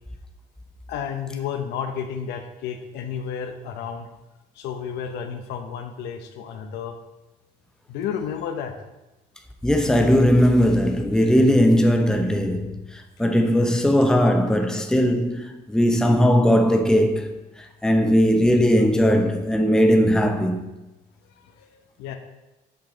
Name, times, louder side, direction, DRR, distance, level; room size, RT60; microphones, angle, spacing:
voice 1, 0.9-4.1 4.6-7.0 7.9-8.7 21.4-22.2, left 7 dB, 85° left, 0.7 m, -32 dB
voice 2, 9.6-12.8 13.2-17.3 17.8-20.6, equal, 5° left, 0.6 m, -18 dB
5.9 x 5.3 x 3.8 m
cardioid pair, 110°, 17 cm